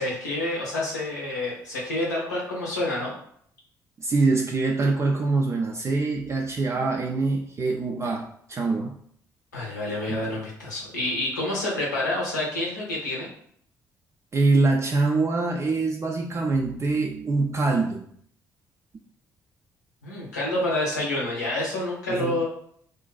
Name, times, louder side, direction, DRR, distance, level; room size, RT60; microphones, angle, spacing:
voice 1, 0.0-3.1 9.5-13.3 20.0-22.5, left 1 dB, 85° left, -4 dB, 0.6 m, -28 dB
voice 2, 4.0-9.0 10.1-10.2 14.3-18.0 22.1-22.4, right 3 dB, 30° right, 0 dB, 0.3 m, -24 dB
2.5 x 2.2 x 2.3 m, 0.64 s
figure-of-eight pair, 45°, 9 cm